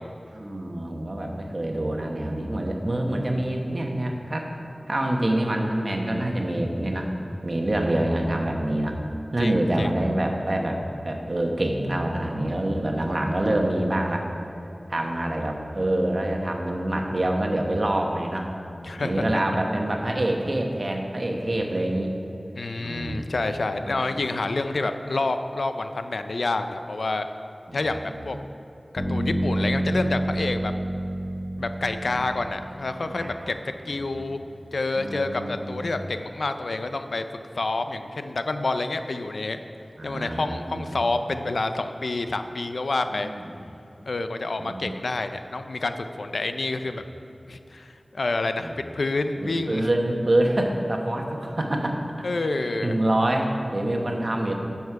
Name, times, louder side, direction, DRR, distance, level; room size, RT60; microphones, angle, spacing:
voice 1, 0.3-4.5 4.9-7.1 7.4-9.0 9.3-14.3 14.9-18.5 19.0-22.1 22.8-23.2 23.6-24.0 27.7-28.0 28.3-28.4 32.1-32.2 33.0-33.5 33.8-33.9 34.2-34.3 34.9-36.0 40.0-40.9 43.2-43.5 44.6-44.9 48.6-48.7 49.4-52.0 52.6-54.5, right 1 dB, 50° right, 2 dB, 1.2 m, -26 dB
voice 2, 9.4-9.9 18.8-19.4 22.5-27.3 27.7-28.4 28.9-30.7 31.6-34.4 34.7-37.2 37.5-39.6 40.0-43.3 44.0-47.0 47.5-49.9 52.2-52.9, left 2 dB, 85° left, 8 dB, 0.5 m, -28 dB
Bass guitar, 29.0-33.0, right 1 dB, 65° left, 2.0 m, -28 dB
11.0 x 7.2 x 4.7 m, 2.9 s
wide cardioid pair, 65°, 0 cm